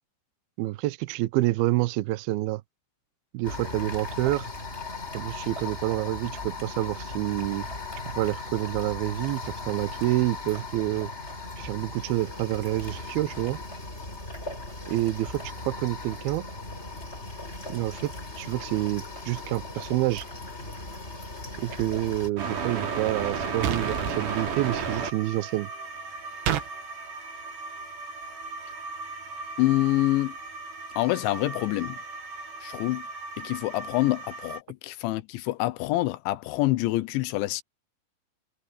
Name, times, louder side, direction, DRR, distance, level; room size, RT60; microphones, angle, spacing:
voice 1, 0.6-2.6 3.3-4.5 5.1-7.7 8.1-11.1 11.6-13.6 14.9-16.4 17.7-18.1 18.4-20.2 21.6-25.7, right 17 dB, 85° right, 2.2 m, -28 dB
sound 1, 3.4-22.3, left 3 dB, 15° left, 5.0 m, -38 dB
sound 2, 22.4-34.6, right 4 dB, 45° right, 4.5 m, -35 dB
sound 3, 23.6-24.2 26.5-26.7, right 10 dB, 70° right, 3.7 m, -27 dB
voice 2, 29.6-30.4 31.0-32.0 32.6-33.1 33.4-37.6, left 18 dB, 85° left, 3.3 m, -26 dB
omnidirectional pair, 5.3 m